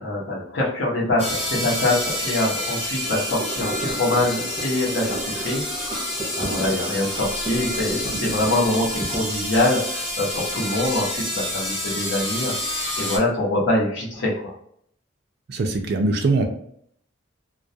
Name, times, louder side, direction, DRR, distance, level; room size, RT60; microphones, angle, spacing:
voice 1, 0.0-6.1 6.4-12.5 13.0-14.5, left 2 dB, 70° left, -3 dB, 0.8 m, -24 dB
sound 1, 1.2-13.2, left 1 dB, 30° left, 0.8 m, -29 dB
sound 2, 3.0-9.2, right 2 dB, 10° right, 0.7 m, -34 dB
voice 2, 15.5-16.5, right 2 dB, 60° right, 3 dB, 0.4 m, -22 dB
2.3 x 2.2 x 2.6 m, 0.67 s
head